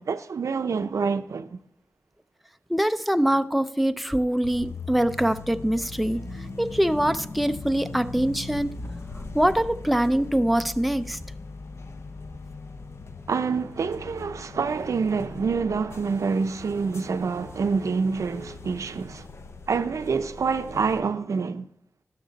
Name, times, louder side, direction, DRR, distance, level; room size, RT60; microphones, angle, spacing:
voice 1, 0.0-1.6 13.3-19.3 19.7-21.6, right 5 dB, 85° right, 0.6 m, -27 dB
voice 2, 2.7-6.2 6.6-8.7 9.3-11.2, right 1 dB, ahead, 0.4 m, -23 dB
sound 1, 4.4-21.0, left 3 dB, 60° left, 0.8 m, -40 dB
12.5 x 12.0 x 4.0 m
wide cardioid pair, 105°, 5 cm